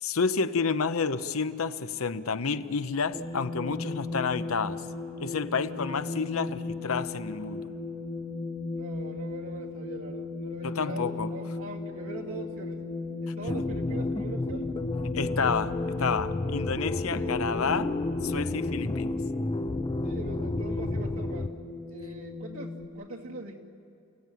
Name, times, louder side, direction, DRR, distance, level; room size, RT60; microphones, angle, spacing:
voice 1, 0.0-4.8 5.2-7.7 10.6-11.3 15.1-17.9 18.2-19.2, left 5 dB, 85° left, 12 dB, 0.8 m, -30 dB
sound 1, 3.1-22.9, left 3 dB, ahead, 1.4 m, -37 dB
voice 2, 5.6-6.2 8.7-12.8 13.2-14.7 17.0-17.5 20.0-21.5 21.9-23.5, right 2 dB, 75° right, -1 dB, 2.6 m, -42 dB
sound 2, 13.5-21.5, left 2 dB, 25° left, 0.6 m, -31 dB
29.5 x 17.0 x 9.3 m, 2.6 s
head